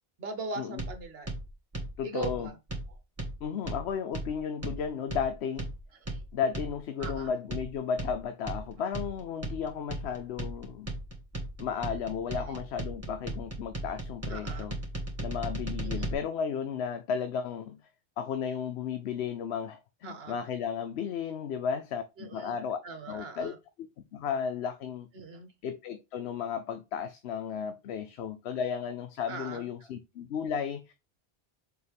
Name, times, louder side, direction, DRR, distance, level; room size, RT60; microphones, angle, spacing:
voice 1, 0.2-1.3 2.0-2.6 2.9-3.0 6.0-6.2 7.0-7.3 12.3-12.6 14.3-14.7 15.8-16.2 20.0-20.4 22.2-23.6 25.1-25.5 29.3-29.9, right 4 dB, 65° right, 1.3 m, -41 dB
sound 1, 0.8-16.1, right 1 dB, 15° right, 1.4 m, -37 dB
voice 2, 2.0-2.5 3.4-5.7 6.3-10.9 11.6-14.7 15.2-17.8 18.2-22.8 23.1-23.5 24.1-25.1 25.6-30.9, left 7 dB, 75° left, 0.9 m, -34 dB
6.7 x 4.4 x 3.4 m
omnidirectional pair, 1.1 m